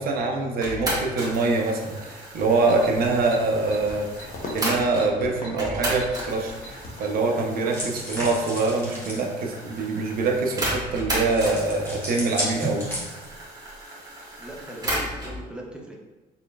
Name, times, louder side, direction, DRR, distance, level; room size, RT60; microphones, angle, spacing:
voice 1, 0.0-12.9, right 3 dB, 60° right, 1 dB, 0.7 m, -24 dB
sound 1, 0.6-5.1 5.6-15.4, right 1 dB, 20° right, 1.2 m, -34 dB
sound 2, 2.4-7.3, left 2 dB, 60° left, 0.9 m, -40 dB
sound 3, 7.7-9.2 11.3-13.4, right 1 dB, 15° left, 1.5 m, -33 dB
voice 2, 14.4-16.0, right 1 dB, 5° right, 0 dB, 0.6 m, -39 dB
4.2 x 3.3 x 2.3 m, 1.2 s
cardioid pair, 110°, 17 cm